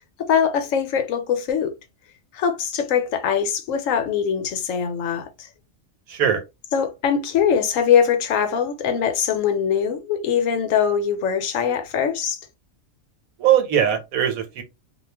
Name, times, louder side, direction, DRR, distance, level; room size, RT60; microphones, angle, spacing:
voice 1, 0.0-1.7 2.3-5.5 6.7-12.4, left 7 dB, 75° left, 1.0 m, -22 dB
voice 2, 6.1-6.4 13.4-14.6, right 9 dB, 80° right, 1.2 m, -20 dB
2.4 x 2.3 x 3.3 m
omnidirectional pair, 1.4 m